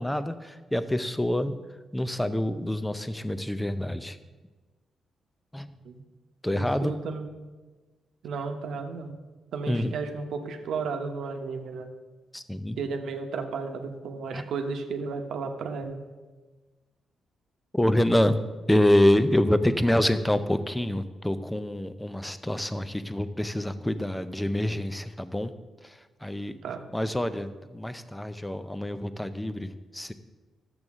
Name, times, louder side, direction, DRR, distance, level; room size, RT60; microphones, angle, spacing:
voice 1, 0.0-1.6 1.9-4.2 5.5-5.7 6.4-6.9 9.7-9.9 12.3-12.8 14.3-14.4 17.7-18.4 18.7-25.5 25.8-26.6 26.9-30.1, left 1 dB, 5° left, 11 dB, 0.5 m, -26 dB
voice 2, 6.5-7.3 8.2-9.1 9.5-11.9 12.8-16.0 26.6-26.8, right 4 dB, 75° right, 5 dB, 0.9 m, -33 dB
12.0 x 7.8 x 3.6 m, 1.3 s
cardioid pair, 140°, 0 cm